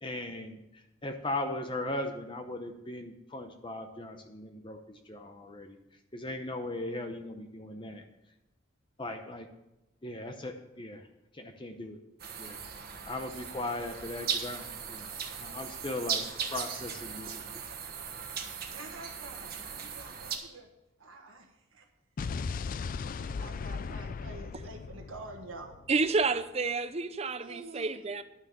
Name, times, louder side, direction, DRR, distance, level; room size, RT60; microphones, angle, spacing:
voice 1, 0.0-5.8 6.1-8.0 9.0-9.5 10.0-11.1 11.3-12.0 12.4-17.7, left 2 dB, 25° left, 0.7 m, -38 dB
sound 1, 12.2-20.4, right 6 dB, 45° right, 1.4 m, -38 dB
voice 2, 18.7-20.7 21.0-21.8 23.1-25.8 27.4-27.9, right 2 dB, 75° right, 1.5 m, -47 dB
Explosion, 22.2-26.3, left 5 dB, 40° left, 0.3 m, -37 dB
voice 3, 25.9-28.2, right 4 dB, 30° right, 0.6 m, -30 dB
11.0 x 6.4 x 7.2 m
head